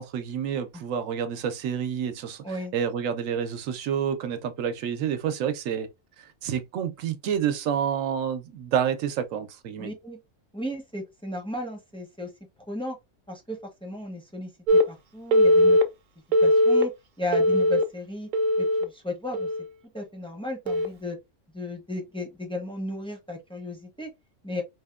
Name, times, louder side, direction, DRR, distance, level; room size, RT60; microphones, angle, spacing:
voice 1, 0.0-5.9 6.2-9.9, right 8 dB, 90° right, 1.0 m, -29 dB
voice 2, 9.8-10.2 10.5-12.3 12.7-13.0 13.3-15.8 16.4-16.9 17.2-18.3 18.6-19.5 19.9-21.2 21.5-24.1 24.4-24.6, left 1 dB, 5° left, 0.4 m, -34 dB
Telephone, 14.7-14.8 15.3-15.8 16.3-16.8 17.3-17.8 18.3-18.8 19.3-19.6 20.7-20.9, left 1 dB, 60° right, 0.5 m, -19 dB
4.0 x 2.1 x 2.3 m
omnidirectional pair, 1.3 m